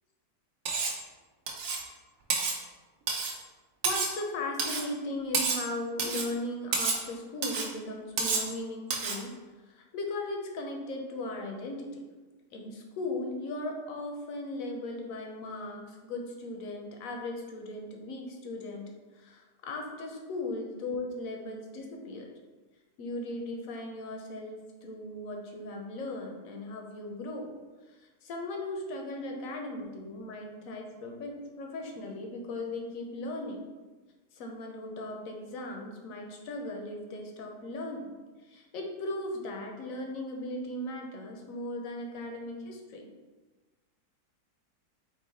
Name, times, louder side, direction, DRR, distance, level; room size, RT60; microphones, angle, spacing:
Cutlery silverware, 0.7-1.0 1.5-1.9 2.3-2.6 3.1-3.4 3.8-4.2 4.6-4.9 5.3-5.7 6.0-6.3 6.7-7.0 7.4-7.7 8.2-8.5 8.9-9.2, right 4 dB, 65° right, 0.9 m, -30 dB
voice 1, 3.8-9.3 9.7-12.0 12.5-22.3 23.0-27.5 27.9-33.6 34.3-38.1 38.4-43.1, left 2 dB, 65° left, 2 dB, 0.9 m, -37 dB
3.8 x 2.8 x 4.0 m, 1.3 s
omnidirectional pair, 1.8 m